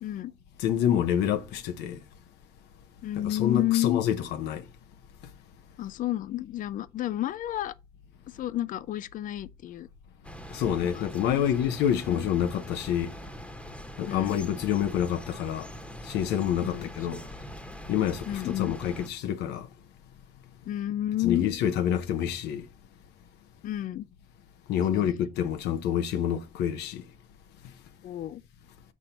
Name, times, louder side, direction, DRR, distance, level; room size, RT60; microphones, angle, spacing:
voice 1, 0.0-0.3 3.0-4.0 5.8-7.7 8.3-9.9 10.8-11.0 11.4-11.5 12.1-12.3 14.1-14.4 16.6-16.9 18.3-18.8 20.7-21.5 23.6-24.1 24.9-25.2 28.0-28.4, left 13 dB, 50° left, 0.4 m, -31 dB
voice 2, 0.6-2.0 3.2-4.7 10.5-13.1 14.0-15.7 16.0-17.2 17.9-19.7 21.2-22.6 24.7-27.0, left 9 dB, 85° left, 0.8 m, -27 dB
sound 1, 10.2-19.1, equal, 5° left, 1.1 m, -43 dB
6.3 x 4.3 x 5.1 m
cardioid pair, 110°, 17 cm